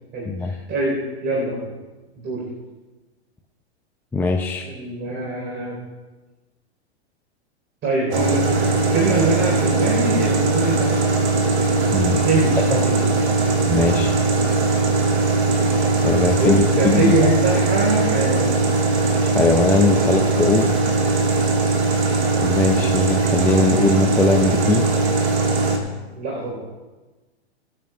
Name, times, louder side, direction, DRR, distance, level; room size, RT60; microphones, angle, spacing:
voice 1, 0.1-1.6 2.2-2.5 4.6-5.8 7.8-11.1 12.2-13.2 16.4-18.5 26.1-26.6, right 2 dB, 30° right, -4 dB, 4.3 m, -23 dB
voice 2, 4.1-4.7 11.9-12.2 12.7-12.8 13.7-14.1 16.0-17.3 19.3-20.7 22.4-24.9, left 3 dB, 5° left, 1 dB, 0.5 m, -20 dB
sound 1, 8.1-25.8, right 3 dB, 75° right, 2.6 m, -20 dB
24.0 x 9.3 x 2.4 m, 1.2 s
hypercardioid pair, 120°, 33 cm